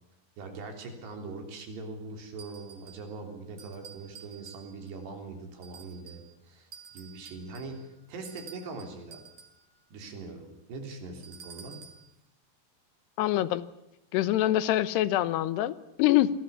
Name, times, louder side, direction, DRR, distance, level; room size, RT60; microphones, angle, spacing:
voice 1, 0.4-9.2 9.9-11.8, right 3 dB, 85° right, 4 dB, 5.7 m, -42 dB
sound 1, 2.4-3.1 3.6-5.0 5.6-6.3 6.7-9.7 11.2-12.1, right 7 dB, 55° right, 5.0 m, -50 dB
voice 2, 13.2-13.7 14.1-16.3, left 14 dB, 80° left, 16 dB, 3.1 m, -25 dB
27.0 x 19.0 x 7.2 m, 0.89 s
omnidirectional pair, 4.7 m